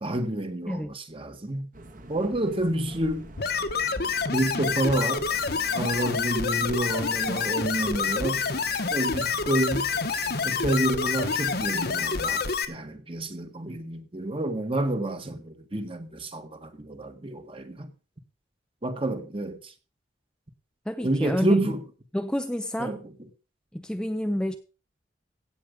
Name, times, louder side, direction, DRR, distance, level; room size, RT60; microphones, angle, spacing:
voice 1, 0.0-1.7 2.1-3.3 4.3-5.3 5.7-8.5 8.9-9.9 10.4-17.9 18.8-19.7 21.0-21.8 22.8-23.1, right 1 dB, 30° right, 1.6 m, -29 dB
sound 1, 1.7-12.4, right 1 dB, 50° right, 2.0 m, -46 dB
sound 2, 3.4-12.6, left 5 dB, 60° left, 1.3 m, -27 dB
voice 2, 20.9-21.7 22.1-23.0 23.7-24.6, equal, 5° left, 0.6 m, -29 dB
16.5 x 7.6 x 5.2 m
head